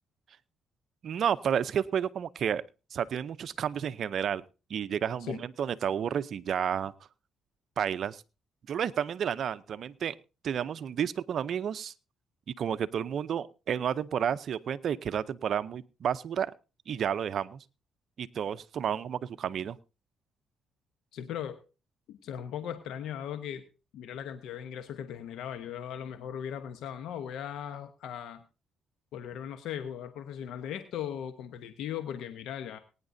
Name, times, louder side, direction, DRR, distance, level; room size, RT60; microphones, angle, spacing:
voice 1, 1.0-2.6 2.9-4.4 4.7-6.9 7.8-8.2 8.7-10.1 10.4-11.9 12.6-16.5 16.9-17.6 18.2-19.8, right 8 dB, 60° right, 15 dB, 0.6 m, -31 dB
voice 2, 21.1-21.6 22.1-23.6 23.9-28.4 29.1-32.8, left 9 dB, 85° left, 9 dB, 1.0 m, -38 dB
21.5 x 9.8 x 2.7 m, 0.32 s
cardioid pair, 90°, 0 cm